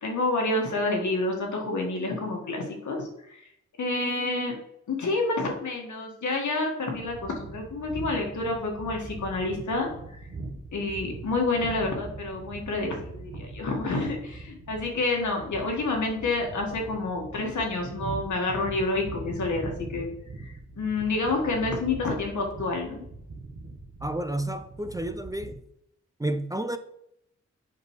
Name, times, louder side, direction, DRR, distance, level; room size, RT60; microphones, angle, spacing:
voice 1, 0.0-3.4 3.8-4.6 4.9-9.9 10.7-20.1 20.4-23.0, left 2 dB, 80° left, 1.7 m, -28 dB
sound 1, 6.9-25.6, right 3 dB, 55° right, 1.1 m, -41 dB
voice 2, 24.0-25.6 26.2-26.8, right 1 dB, 10° right, 0.4 m, -30 dB
7.5 x 5.2 x 3.1 m
cardioid pair, 70°, 29 cm